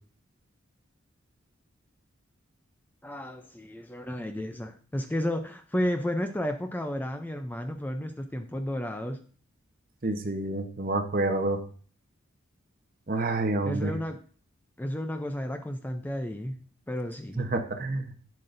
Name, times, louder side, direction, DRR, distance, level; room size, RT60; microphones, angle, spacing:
voice 1, 3.0-9.2 13.6-14.2 14.8-16.6 16.9-17.4, left 1 dB, 10° left, 6 dB, 0.5 m, -32 dB
voice 2, 10.0-11.6 13.1-13.9 17.4-18.1, right 2 dB, 45° right, 6 dB, 1.0 m, -28 dB
9.6 x 7.5 x 2.6 m, 0.43 s
head